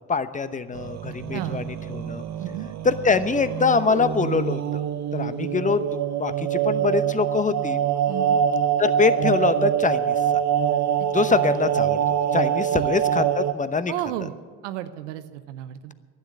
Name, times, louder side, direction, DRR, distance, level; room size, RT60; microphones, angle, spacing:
voice 1, 0.1-2.2 2.8-4.8 5.1-7.8 8.8-10.1 11.1-12.0 12.3-13.9, left 5 dB, 20° left, 13 dB, 0.9 m, -24 dB
sound 1, 0.7-13.5, right 9 dB, 50° right, 1.1 m, -25 dB
voice 2, 1.3-1.7 2.4-2.7 8.1-8.4 11.3-11.4 12.7-12.9 13.9-14.3 14.6-15.9, right 13 dB, 85° right, 11 dB, 0.9 m, -33 dB
11.5 x 9.9 x 9.8 m, 1.5 s
hypercardioid pair, 65°, 35 cm